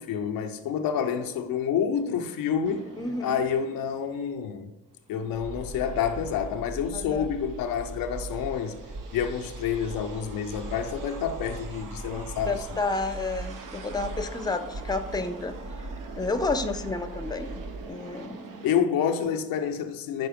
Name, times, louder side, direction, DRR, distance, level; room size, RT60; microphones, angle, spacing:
voice 1, 0.0-2.9 3.2-4.7 5.1-8.8 9.1-12.7 18.6-20.3, left 7 dB, 85° left, 0.6 m, -28 dB
sound 1, 2.6-4.5 4.9-18.8, right 4 dB, 70° right, 0.8 m, -45 dB
voice 2, 3.0-3.4 6.9-7.3 12.5-15.6 16.1-18.4, left 3 dB, 10° left, 0.6 m, -30 dB
sound 2, 5.3-17.9, right 2 dB, 45° right, 1.2 m, -40 dB
5.9 x 4.1 x 5.0 m
supercardioid pair, 50°, 33 cm